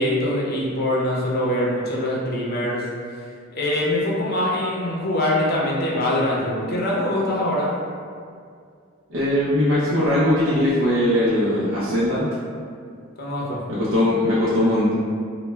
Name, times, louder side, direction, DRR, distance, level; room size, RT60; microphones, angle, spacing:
voice 1, 0.0-2.9 3.5-7.7 13.2-13.6, left 1 dB, 50° left, -4 dB, 0.5 m, -23 dB
voice 2, 9.1-12.3 13.7-14.9, left 1 dB, 90° right, -10 dB, 0.5 m, -20 dB
2.1 x 2.0 x 3.2 m, 2.2 s
head